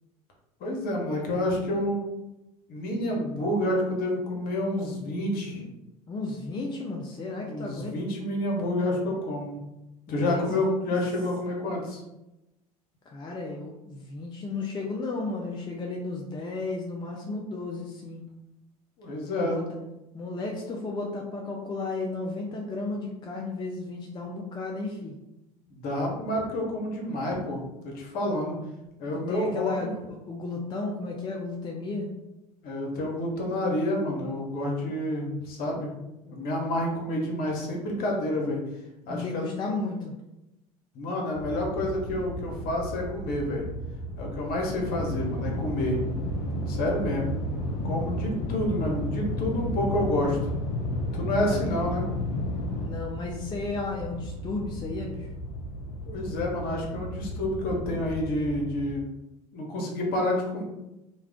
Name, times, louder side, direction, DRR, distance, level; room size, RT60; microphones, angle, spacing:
voice 1, 0.6-2.1 2.7-5.7 7.4-9.6 10.1-12.0 19.0-19.7 25.7-28.6 29.0-29.9 32.6-35.9 36.2-38.6 39.1-39.6 40.9-43.6 44.2-46.0 46.7-47.3 47.8-50.4 51.1-52.0 56.1-59.0 59.5-60.6, left 1 dB, 50° left, -1 dB, 0.9 m, -29 dB
voice 2, 6.1-7.9 10.1-10.8 13.1-18.2 19.4-19.6 20.1-25.2 29.3-32.1 39.1-40.1 51.4-51.6 52.8-55.3, left 3 dB, 25° left, 0 dB, 0.4 m, -34 dB
sound 1, 41.3-58.9, left 1 dB, 75° left, 0.6 m, -33 dB
2.3 x 2.3 x 3.5 m, 0.95 s
hypercardioid pair, 75°, 19 cm